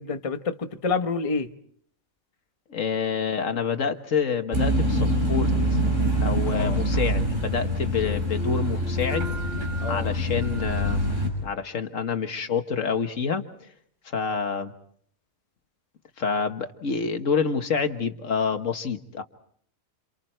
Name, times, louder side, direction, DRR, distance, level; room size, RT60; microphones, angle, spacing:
voice 1, 0.0-1.5 6.5-6.8 9.8-10.1, left 4 dB, 25° left, 1.0 m, -28 dB
voice 2, 2.7-5.5 6.2-13.7 14.1-14.7 16.2-19.2, left 6 dB, 75° left, 1.7 m, -28 dB
sound 1, 4.5-11.3, equal, 65° right, 6.4 m, -25 dB
sound 2, 8.0-9.6, equal, 50° right, 5.8 m, -42 dB
29.0 x 28.5 x 4.5 m
omnidirectional pair, 1.4 m